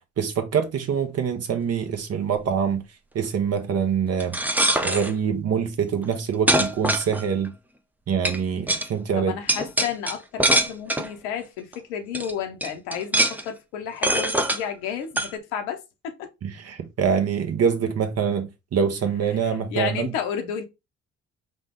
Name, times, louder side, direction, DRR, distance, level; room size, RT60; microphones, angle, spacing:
voice 1, 0.2-2.8 3.1-4.4 4.8-7.5 8.1-9.3 16.4-20.1, right 7 dB, 45° right, 0.9 m, -25 dB
sound 1, 4.2-5.1 6.0-6.1 6.5-7.5 8.2-8.4 8.7-8.9 9.5-11.1 11.7-11.8 12.1-12.3 12.6-13.5 14.0-14.6 15.2-15.3, right 1 dB, 5° right, 0.5 m, -22 dB
voice 2, 9.2-16.3 19.3-20.6, left 8 dB, 70° left, 0.9 m, -32 dB
5.1 x 2.2 x 3.6 m
figure-of-eight pair, 45°, 36 cm